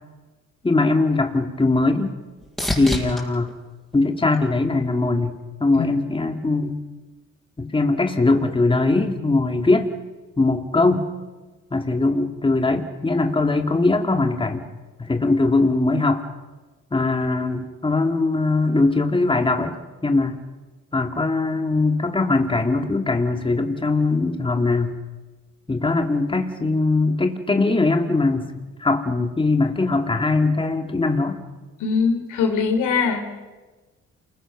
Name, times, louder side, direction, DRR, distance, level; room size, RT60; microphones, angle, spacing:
voice 1, 0.6-2.2 2.8-3.5 3.9-6.8 7.6-9.9 10.4-11.1 11.7-14.6 15.0-16.2 16.9-19.8 20.0-20.4 20.9-25.0 25.7-28.5 28.8-31.4, left 3 dB, 15° left, 5 dB, 2.4 m, -21 dB
sound 1, 1.5-5.1 5.6-6.2 14.0-14.1, left 1 dB, ahead, 5.9 m, -33 dB
voice 2, 31.8-33.2, left 5 dB, 85° left, 5 dB, 3.7 m, -22 dB
28.5 x 21.0 x 6.1 m, 1.3 s
cardioid pair, 90°, 30 cm